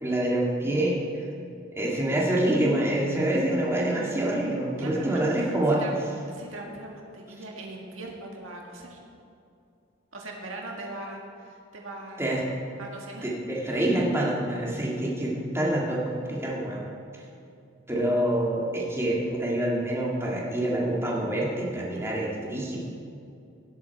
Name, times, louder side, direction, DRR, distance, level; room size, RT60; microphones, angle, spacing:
voice 1, 0.0-1.0 1.7-5.8 12.2-12.4 13.2-16.0 16.3-16.9 17.9-22.8, right 1 dB, 15° right, -4 dB, 2.0 m, -26 dB
voice 2, 4.8-9.0 10.1-12.3 12.8-13.3, right 2 dB, 85° right, 0 dB, 1.8 m, -40 dB
17.5 x 7.7 x 4.5 m, 2.5 s
head